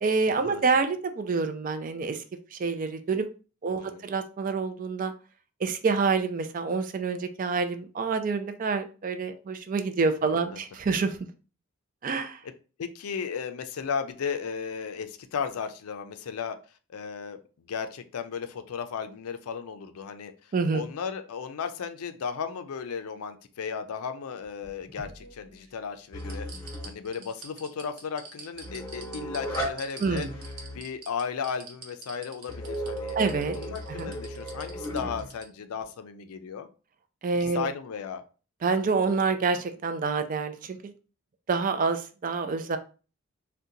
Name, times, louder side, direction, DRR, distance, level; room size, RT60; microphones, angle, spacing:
voice 1, 0.0-2.2 2.5-3.3 3.6-5.1 5.6-11.2 12.0-12.4 20.5-20.9 30.0-30.4 33.2-33.6 33.9-34.1 37.2-37.7 38.6-40.9 41.5-42.8, right 4 dB, 35° right, 8 dB, 0.3 m, -27 dB
voice 2, 12.8-16.6 16.9-20.3 20.7-26.5 26.8-30.3 30.7-33.2 33.5-36.7 37.4-38.2, left 6 dB, 80° left, 9 dB, 0.4 m, -35 dB
sound 1, 24.4-25.7 26.2-35.4 35.8-35.9, right 4 dB, 80° right, 0.9 m, -45 dB
sound 2, 26.1-27.0 28.5-29.7 30.0-30.8 32.5-35.3, equal, 20° left, 0.8 m, -35 dB
2.7 x 2.2 x 3.7 m, 0.36 s
head